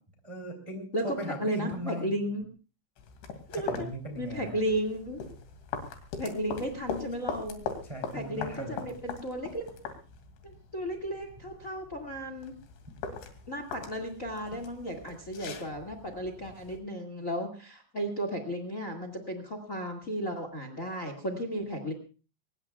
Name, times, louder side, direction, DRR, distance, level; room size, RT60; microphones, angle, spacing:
voice 1, 0.2-2.3 3.5-4.6 7.8-8.8, equal, 10° right, 3 dB, 2.1 m, -38 dB
voice 2, 0.9-2.5 3.5-3.9 4.2-5.2 6.2-7.6 8.1-9.7 10.4-12.5 13.5-21.9, equal, 50° left, 6 dB, 0.9 m, -34 dB
sound 1, 3.0-16.8, left 6 dB, 80° left, 4.8 m, -41 dB
24.5 x 21.0 x 2.4 m, 0.35 s
omnidirectional pair, 5.3 m